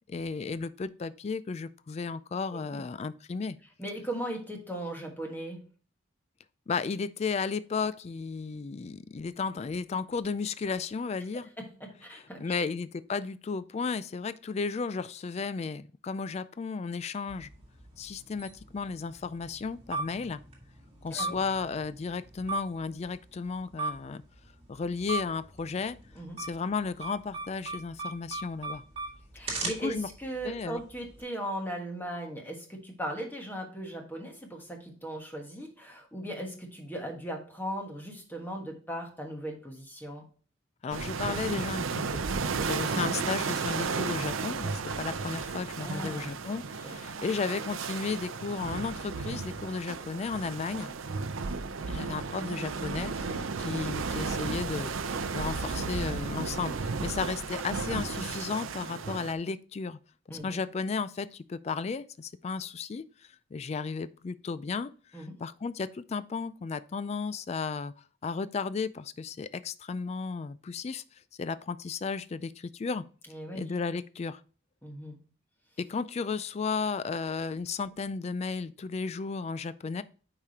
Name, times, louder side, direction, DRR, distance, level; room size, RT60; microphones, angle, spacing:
voice 1, 0.1-3.6 6.7-11.5 12.1-17.5 18.0-20.4 21.0-24.2 24.7-26.0 26.4-28.8 29.6-30.1 30.4-30.8 40.8-42.2 42.6-50.9 51.9-60.0 60.3-63.0 63.5-67.9 68.2-73.0 73.5-74.4 75.8-80.0, left 5 dB, 30° left, 0.3 m, -34 dB
voice 2, 2.5-2.8 3.8-5.7 11.6-12.5 21.1-21.4 26.1-26.4 29.3-40.2 45.8-46.4 46.8-47.0 60.3-60.6 65.1-65.3 73.3-73.7 74.8-75.2, right 1 dB, 10° left, 1.3 m, -38 dB
sound 1, 17.3-31.2, right 3 dB, 30° right, 1.9 m, -40 dB
sound 2, 40.9-59.3, right 4 dB, 85° right, 0.6 m, -34 dB
8.5 x 4.9 x 2.8 m
head